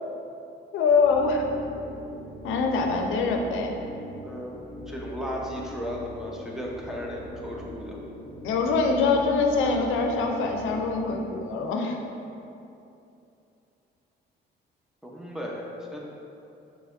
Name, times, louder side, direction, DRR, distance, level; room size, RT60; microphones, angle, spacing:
voice 1, 0.7-1.4 2.4-3.7 8.4-12.0, left 4 dB, 90° left, 2 dB, 0.5 m, -24 dB
sound 1, 1.0-11.4, left 1 dB, 35° left, 0.7 m, -42 dB
voice 2, 4.2-8.0 15.0-16.0, equal, ahead, -3 dB, 0.7 m, -35 dB
6.2 x 3.0 x 2.6 m, 2.8 s
cardioid pair, 90°, 20 cm